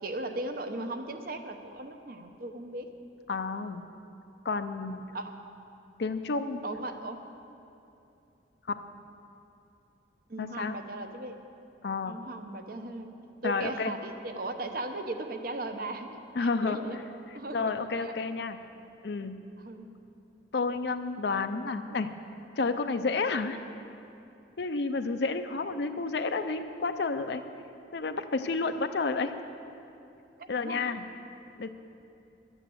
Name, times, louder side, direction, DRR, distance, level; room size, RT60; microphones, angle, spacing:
voice 1, 0.0-2.9 5.1-5.4 6.6-7.2 10.3-11.4 12.0-13.2 13.4-17.0 17.3-17.7 18.0-18.1 19.6-19.9 30.4-31.0, right 2 dB, 50° right, 6 dB, 0.8 m, -37 dB
voice 2, 3.3-3.8 4.4-5.0 6.0-6.6 10.4-10.8 11.8-12.2 13.4-13.9 16.4-16.8 17.5-18.6 19.0-19.4 20.5-22.1 22.6-23.6 24.6-27.5 27.9-29.3 30.5-31.0 31.6-31.7, left 4 dB, 65° left, 8 dB, 0.5 m, -30 dB
11.5 x 9.0 x 7.8 m, 2.7 s
head